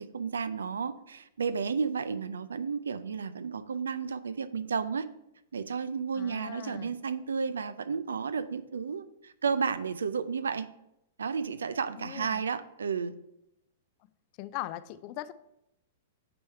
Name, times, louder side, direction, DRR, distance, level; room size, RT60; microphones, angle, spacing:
voice 1, 0.0-5.1 5.5-10.7 11.2-13.2, right 5 dB, 85° right, 0.3 m, -32 dB
voice 2, 6.1-7.0 12.0-12.4 14.4-15.3, left 15 dB, 45° left, 0.3 m, -40 dB
8.8 x 3.4 x 4.4 m
hypercardioid pair, 115°, 0 cm